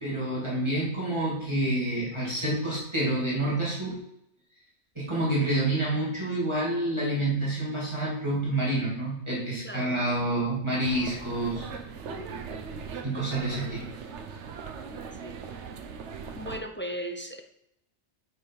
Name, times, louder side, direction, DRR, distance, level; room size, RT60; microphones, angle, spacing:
voice 1, 0.0-3.9 5.0-11.7 13.0-13.8, right 1 dB, 25° right, -8 dB, 2.5 m, -28 dB
voice 2, 9.6-10.0 12.1-12.5 15.2-15.7 16.4-17.4, equal, 15° left, 4 dB, 0.5 m, -38 dB
sound 1, 10.8-16.6, right 6 dB, 75° right, 1.1 m, -40 dB
6.9 x 6.2 x 4.6 m, 0.80 s
omnidirectional pair, 1.2 m